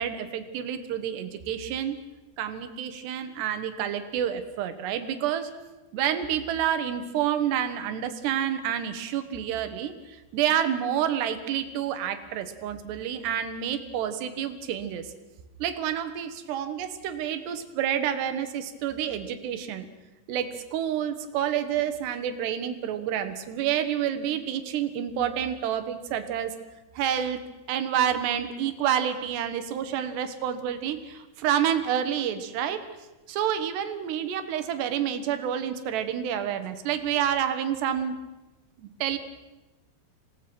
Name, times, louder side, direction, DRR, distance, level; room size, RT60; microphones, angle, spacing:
voice 1, 0.0-2.0 2.4-5.5 5.9-15.1 15.6-19.9 20.3-26.6 27.0-32.9 33.3-38.2 38.8-39.2, right 9 dB, 90° right, 10 dB, 3.5 m, -29 dB
27.0 x 18.0 x 6.1 m, 1.1 s
omnidirectional pair, 4.7 m